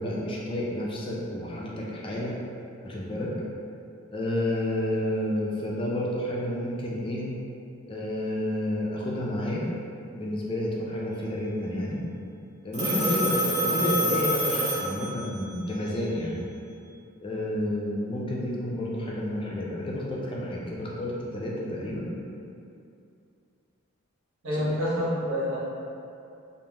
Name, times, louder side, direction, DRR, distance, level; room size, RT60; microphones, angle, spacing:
voice 1, 0.0-2.4 2.8-3.3 4.1-7.2 7.9-9.6 10.1-12.0 12.6-16.4 17.2-22.1, left 1 dB, 25° left, -4 dB, 0.3 m, -30 dB
Telephone, 12.7-15.5, equal, 30° right, 0.6 m, -27 dB
voice 2, 24.4-25.6, equal, 65° right, -9 dB, 0.8 m, -27 dB
3.2 x 2.4 x 2.2 m, 2.6 s
head